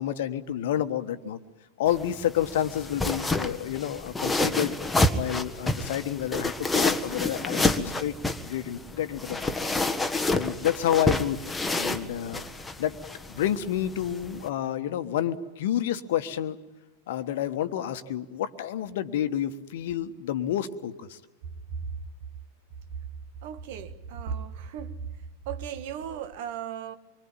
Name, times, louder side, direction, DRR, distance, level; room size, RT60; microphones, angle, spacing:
voice 1, 0.0-1.4 1.8-4.7 5.1-8.1 8.4-9.5 10.3-11.4 11.7-12.5 12.8-13.0 13.3-16.6 17.1-21.2, left 11 dB, 55° left, 1.4 m, -29 dB
sound 1, 1.9-14.5, left 2 dB, 5° left, 1.5 m, -29 dB
voice 2, 23.4-25.1 25.4-27.0, right 7 dB, 50° right, 1.7 m, -36 dB
25.5 x 24.5 x 8.7 m
figure-of-eight pair, 90°, 0 cm